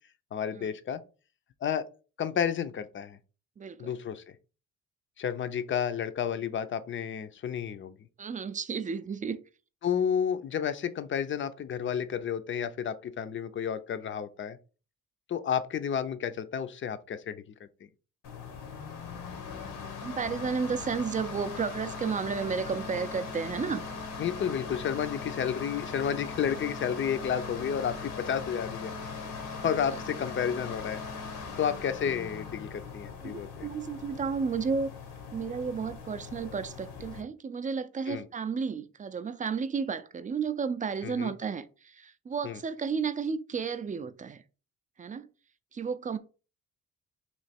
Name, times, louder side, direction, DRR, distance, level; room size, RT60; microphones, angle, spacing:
voice 1, 0.3-1.0 1.6-1.9 2.2-3.2 3.8-4.2 5.2-7.9 9.8-14.6 15.3-17.4 24.2-28.9 29.6-31.0 31.6-33.7 38.1-38.3 41.0-41.3 42.4-42.6, left 8 dB, 40° left, 0.5 m, -31 dB
voice 2, 3.6-3.9 8.2-9.4 20.0-23.9 29.8-29.9 33.2-34.9 35.3-44.4 45.0-45.3 45.7-46.2, right 5 dB, 25° right, 0.4 m, -32 dB
sound 1, 18.2-37.2, left 5 dB, 85° left, 1.1 m, -40 dB
3.1 x 2.8 x 4.2 m
cardioid pair, 90°, 30 cm